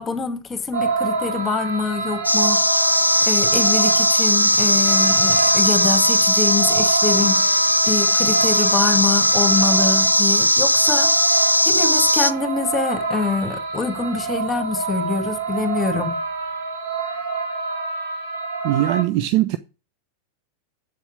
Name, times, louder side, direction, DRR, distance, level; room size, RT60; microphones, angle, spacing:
voice 1, 0.0-2.6 3.2-7.4 7.9-11.1 11.6-16.2, left 4 dB, 15° left, 2.1 m, -25 dB
sound 1, 0.7-19.0, right 3 dB, 70° right, 4.9 m, -26 dB
sound 2, 2.2-12.3, left 1 dB, 90° left, 0.5 m, -18 dB
voice 2, 18.6-19.6, right 15 dB, 45° right, 0.6 m, -20 dB
8.1 x 7.1 x 7.9 m
figure-of-eight pair, 90°, 0 cm